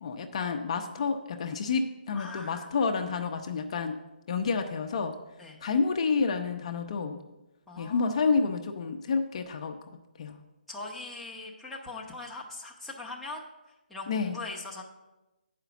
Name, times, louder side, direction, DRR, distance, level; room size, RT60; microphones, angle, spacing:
voice 1, 0.0-4.0 4.3-5.2 5.6-7.2 7.8-9.8 10.2-10.4 14.1-14.4, left 5 dB, 40° left, 5 dB, 0.6 m, -29 dB
voice 2, 2.1-2.9 5.4-5.6 7.7-8.3 10.7-13.4 13.9-14.8, left 3 dB, ahead, -6 dB, 0.7 m, -41 dB
8.0 x 5.1 x 6.9 m, 1.0 s
hypercardioid pair, 160°, 5 cm